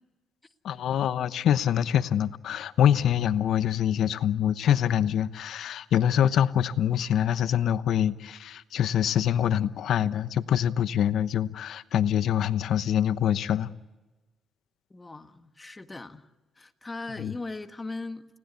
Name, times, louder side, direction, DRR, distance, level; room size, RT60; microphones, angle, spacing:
voice 1, 0.6-13.7 17.2-17.3, left 10 dB, 70° left, 1.0 m, -25 dB
voice 2, 14.9-16.3 16.6-18.3, left 3 dB, 20° left, 1.7 m, -39 dB
30.0 x 19.0 x 8.3 m
cardioid pair, 90°, 0 cm